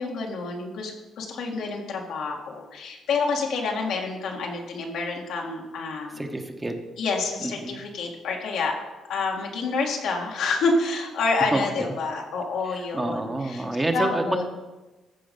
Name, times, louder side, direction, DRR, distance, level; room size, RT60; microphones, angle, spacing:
voice 1, 0.0-6.2 7.0-8.8 9.1-13.6 13.9-14.4, left 4 dB, 80° left, 0 dB, 2.0 m, -28 dB
voice 2, 6.2-6.8 7.4-7.8 11.5-11.6 12.7-14.4, right 2 dB, 15° right, 5 dB, 1.2 m, -28 dB
14.5 x 5.1 x 5.4 m, 1.1 s
cardioid pair, 90°, 0 cm